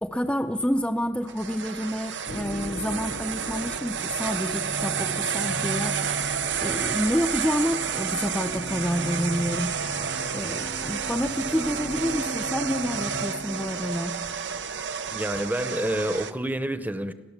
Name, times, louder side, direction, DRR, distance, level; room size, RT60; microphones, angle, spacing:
voice 1, 0.0-6.0 6.5-9.7 10.3-14.2, equal, 5° left, 2 dB, 0.6 m, -28 dB
sound 1, 1.3-16.3, right 7 dB, 80° right, 0.9 m, -31 dB
sound 2, 2.3-14.2, left 1 dB, 55° left, 0.8 m, -38 dB
voice 2, 15.1-17.1, right 1 dB, 10° right, 11 dB, 0.9 m, -28 dB
30.0 x 13.0 x 7.4 m, 1.2 s
head